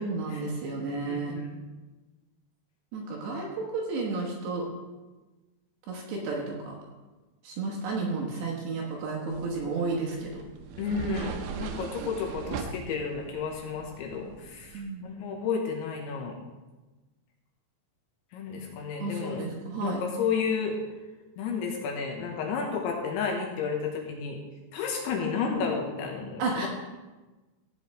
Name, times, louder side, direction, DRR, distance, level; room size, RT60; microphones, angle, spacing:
voice 1, 0.0-1.4 2.9-3.5 3.7-4.7 5.9-6.7 7.4-10.4 14.7-15.1 19.0-20.0 26.4-26.7, right 3 dB, 70° right, -2 dB, 2.9 m, -32 dB
voice 2, 1.1-1.5 10.8-16.3 18.3-19.4 19.8-20.8 21.4-24.4 24.7-26.7, left 5 dB, 75° left, 1 dB, 3.2 m, -32 dB
sound 1, 9.3-14.8, right 6 dB, 85° right, 2.5 m, -40 dB
15.5 x 8.8 x 3.2 m, 1.2 s
omnidirectional pair, 5.9 m